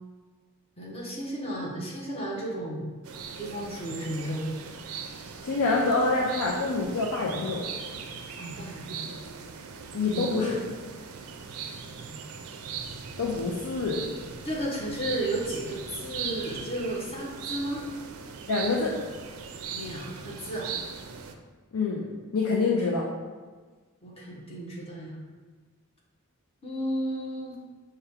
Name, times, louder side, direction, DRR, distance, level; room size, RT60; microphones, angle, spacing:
voice 1, 0.8-2.9 3.4-4.5 8.4-9.2 10.1-10.5 14.4-17.8 19.7-20.7 24.0-25.2 26.6-27.6, right 1 dB, 30° left, -3 dB, 0.9 m, -33 dB
sound 1, 3.0-21.4, right 6 dB, 70° right, 0.4 m, -39 dB
voice 2, 5.4-7.7 9.9-10.6 13.2-14.1 18.5-18.9 21.7-22.1 22.3-23.1, left 3 dB, 80° left, -2 dB, 0.5 m, -26 dB
5.6 x 2.2 x 3.5 m, 1.4 s
head